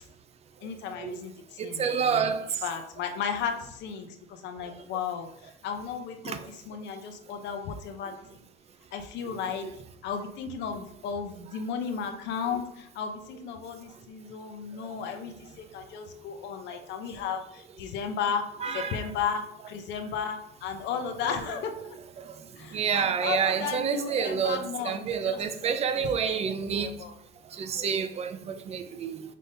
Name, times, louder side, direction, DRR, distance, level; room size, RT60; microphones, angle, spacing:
voice 1, 0.6-2.3 2.6-8.1 8.9-9.7 10.0-21.7 22.6-27.1, left 7 dB, 65° left, 0.7 m, -34 dB
voice 2, 1.6-2.6 6.2-6.4 9.6-9.7 14.8-14.9 18.6-19.0 22.2-27.0 27.4-29.3, right 7 dB, 30° right, 0.4 m, -29 dB
5.4 x 3.4 x 2.7 m
cardioid pair, 130°, 20 cm